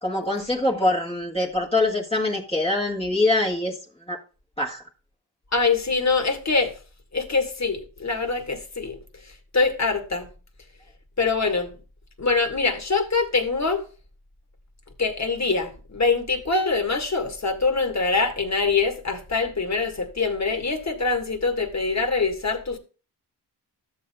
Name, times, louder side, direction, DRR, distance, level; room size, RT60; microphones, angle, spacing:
voice 1, 0.0-3.8 4.1-4.2 4.6-4.8, left 2 dB, 15° left, 1.5 m, -24 dB
voice 2, 5.5-6.7 7.1-9.0 9.5-10.3 11.2-11.7 12.2-13.8 15.0-22.8, left 4 dB, 40° left, 1.6 m, -24 dB
12.5 x 7.5 x 2.2 m
cardioid pair, 55°, 42 cm